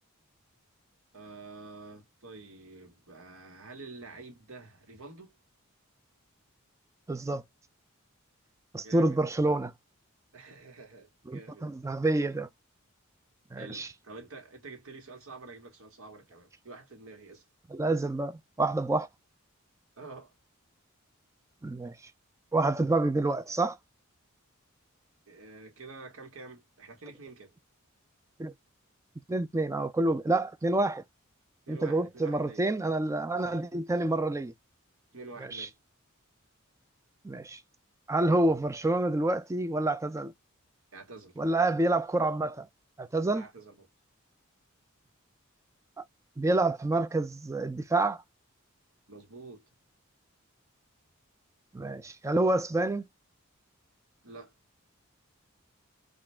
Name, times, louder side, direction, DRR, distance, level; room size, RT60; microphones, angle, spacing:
voice 1, 1.1-5.4 8.8-9.2 10.3-11.7 13.6-17.5 20.0-20.3 25.3-27.5 31.7-32.6 33.4-33.6 34.0-34.2 35.1-35.7 40.9-41.4 43.3-43.9 49.1-49.7 54.2-54.5, right 3 dB, 75° right, 1.5 m, -48 dB
voice 2, 7.1-7.4 8.7-9.7 11.3-12.5 13.5-13.9 17.7-19.1 21.6-21.9 22.5-23.8 28.4-28.5 29.3-31.0 31.7-34.5 35.5-35.7 37.2-37.6 38.1-40.3 41.4-42.7 43.0-43.4 46.4-48.2 51.7-53.0, right 2 dB, 15° right, 0.4 m, -28 dB
3.8 x 2.5 x 3.4 m
head